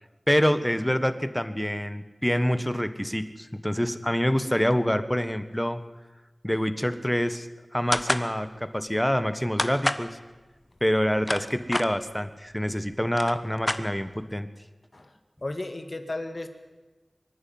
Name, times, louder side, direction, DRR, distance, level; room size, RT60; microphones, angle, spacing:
voice 1, 0.3-5.8 6.4-10.2 10.8-14.5, equal, 5° left, 11 dB, 1.4 m, -26 dB
sound 1, 7.9-8.3 9.6-10.1 11.0-11.9 12.7-12.8 13.0-14.2, left 1 dB, 30° left, 1.2 m, -28 dB
voice 2, 14.9-16.5, left 2 dB, 50° left, 7 dB, 2.1 m, -35 dB
24.5 x 11.0 x 9.4 m, 1.2 s
wide cardioid pair, 50°, 0 cm